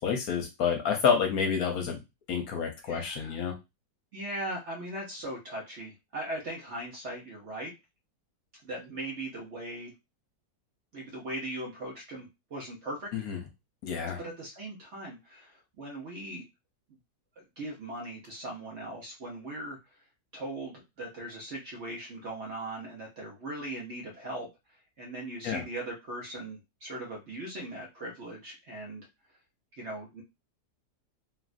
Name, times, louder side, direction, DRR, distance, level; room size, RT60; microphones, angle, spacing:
voice 1, 0.0-2.0 2.3-3.5 13.1-13.4 13.8-14.2 25.4-25.6, left 6 dB, 65° left, 2 dB, 1.1 m, -28 dB
voice 2, 2.8-3.4 4.1-7.7 8.6-9.9 10.9-13.1 14.2-16.5 17.4-19.8 20.3-24.5 25.0-29.1 29.8-30.2, right 1 dB, 50° right, -1 dB, 1.0 m, -39 dB
3.2 x 2.4 x 2.4 m, 0.23 s
omnidirectional pair, 1.8 m